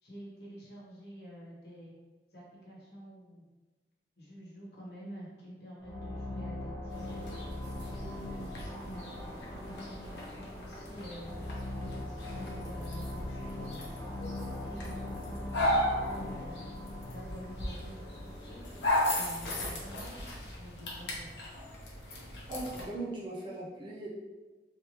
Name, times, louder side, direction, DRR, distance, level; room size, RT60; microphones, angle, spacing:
voice 1, 0.0-1.9 2.3-3.4 4.2-7.3 7.7-11.3 11.7-13.9 14.6-16.7 17.1-21.3, equal, 65° left, -5 dB, 1.1 m, -48 dB
sound 1, 5.8-19.1, left 1 dB, 15° left, 1.0 m, -41 dB
sound 2, 6.9-22.8, left 1 dB, 80° left, 0.8 m, -37 dB
voice 2, 22.5-24.1, right 2 dB, 25° right, -6 dB, 0.8 m, -39 dB
3.3 x 3.0 x 2.9 m, 1.2 s
head